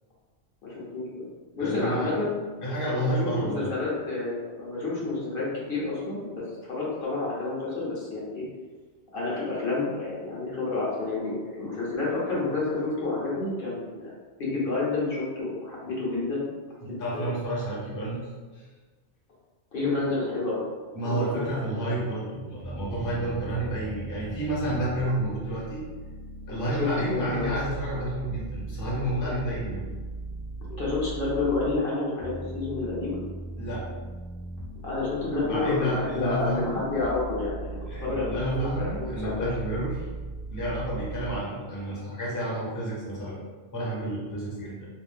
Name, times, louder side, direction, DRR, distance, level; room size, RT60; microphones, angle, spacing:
voice 1, 0.6-1.2 1.5-2.3 3.0-8.4 9.1-14.1 14.4-16.4 16.8-17.3 19.7-20.6 21.0-21.9 26.8-27.5 30.8-33.2 34.8-39.5, left 3 dB, 55° left, -6 dB, 0.9 m, -29 dB
voice 2, 1.6-2.1 2.6-3.7 16.8-18.3 18.5-18.7 20.9-25.8 26.5-29.9 33.6-33.8 35.4-36.9 37.9-40.1 40.5-43.4 43.7-44.9, right 1 dB, 20° left, -6 dB, 0.6 m, -30 dB
sound 1, 22.6-31.8 32.2-41.4, right 2 dB, 90° left, 1.0 m, -38 dB
2.6 x 2.0 x 3.3 m, 1.4 s
omnidirectional pair, 1.2 m